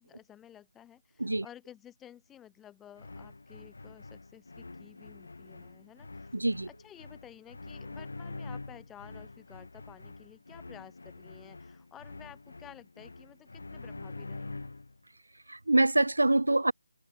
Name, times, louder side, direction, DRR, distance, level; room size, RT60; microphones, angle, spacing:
voice 1, 0.0-6.3 6.7-14.7, left 10 dB, 10° left, 3.2 m, -53 dB
sound 1, 3.0-15.0, left 3 dB, 70° left, 2.4 m, -45 dB
voice 2, 6.3-6.7 15.5-16.7, right 2 dB, 85° right, 0.5 m, -25 dB
figure-of-eight pair, 160°, 0 cm